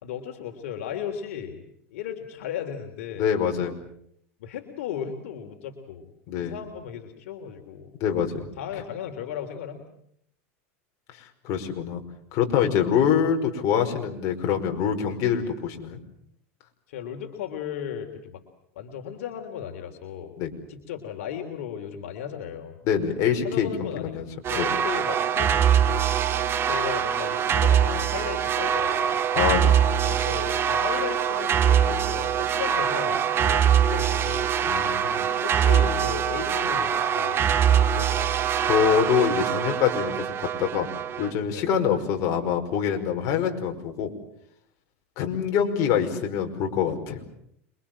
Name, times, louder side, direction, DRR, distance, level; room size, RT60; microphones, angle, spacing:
voice 1, 0.0-1.6 1.9-3.3 4.4-6.1 6.4-7.9 8.6-9.8 15.1-15.2 16.9-18.4 18.7-20.4 20.7-22.8 23.4-24.1 24.4-26.1 26.6-29.2 30.0-34.5 35.4-38.3 41.5-41.7, left 9 dB, 80° left, 4 dB, 3.4 m, -36 dB
voice 2, 3.2-3.8 6.3-6.5 8.0-8.5 11.4-12.0 12.3-16.0 20.4-20.5 22.8-24.2 24.6-24.7 29.3-29.8 34.7-35.3 38.6-40.9 41.2-44.1 45.2-47.2, left 8 dB, 50° left, 4 dB, 5.3 m, -25 dB
sound 1, 24.4-41.3, right 8 dB, 35° right, 2.2 m, -23 dB
27.5 x 23.5 x 7.5 m, 0.70 s
supercardioid pair, 125°, 7 cm